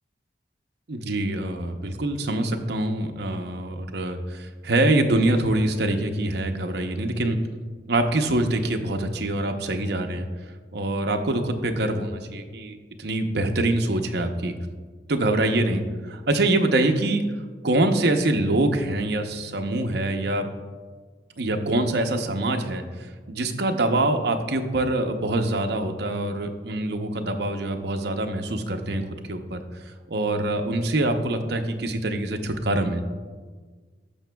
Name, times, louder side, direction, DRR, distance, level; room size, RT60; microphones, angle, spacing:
voice 1, 0.9-7.4 7.9-10.3 10.7-14.5 15.1-17.2 17.6-20.5 21.4-22.8 23.3-29.6 30.1-33.0, right 2 dB, 60° right, 5 dB, 0.7 m, -24 dB
15.5 x 5.8 x 2.3 m, 1.5 s
head